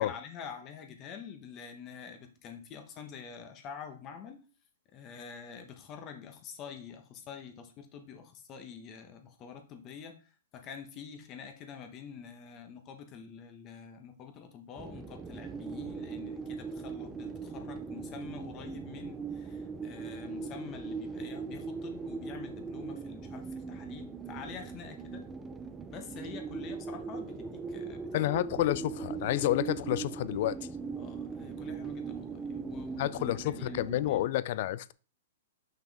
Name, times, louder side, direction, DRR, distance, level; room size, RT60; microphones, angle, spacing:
voice 1, 0.0-4.4 4.9-25.2 25.9-28.3 30.9-34.2, left 7 dB, 35° left, 1.2 m, -47 dB
sound 1, 14.8-34.3, right 5 dB, 15° right, 0.5 m, -40 dB
voice 2, 28.1-30.6 33.0-34.9, left 14 dB, 55° left, 0.4 m, -30 dB
5.8 x 5.3 x 3.5 m
hypercardioid pair, 130°, 0 cm